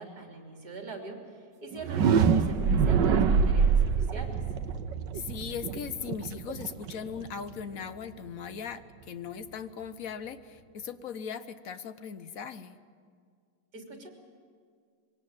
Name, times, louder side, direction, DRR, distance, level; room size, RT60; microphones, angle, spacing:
voice 1, 0.0-4.4 13.7-14.1, right 3 dB, 55° right, 1 dB, 3.7 m, -43 dB
sound 1, 1.7-7.6, right 6 dB, 75° right, 1.6 m, -25 dB
voice 2, 5.1-12.8, left 7 dB, 55° left, 11 dB, 1.2 m, -39 dB
23.5 x 18.0 x 8.9 m, 2.1 s
omnidirectional pair, 2.0 m